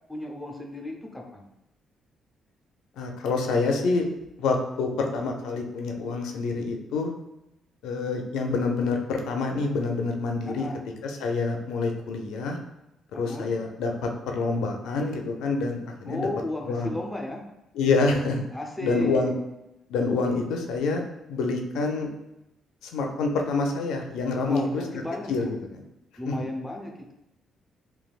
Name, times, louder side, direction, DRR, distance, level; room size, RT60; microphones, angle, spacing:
voice 1, 0.1-1.5 10.4-10.8 13.1-13.5 16.0-17.4 18.5-19.3 24.4-25.5 26.2-27.1, left 1 dB, 5° left, 1 dB, 0.5 m, -34 dB
voice 2, 3.0-4.1 4.4-7.1 7.8-10.7 11.0-12.6 13.2-16.3 16.6-16.9 17.7-18.4 18.8-19.3 19.9-21.0 21.3-22.1 22.8-24.8 25.3-25.8 26.3-26.4, left 3 dB, 85° left, 3 dB, 0.4 m, -27 dB
3.1 x 2.2 x 2.3 m, 0.89 s
cardioid pair, 90°, 0 cm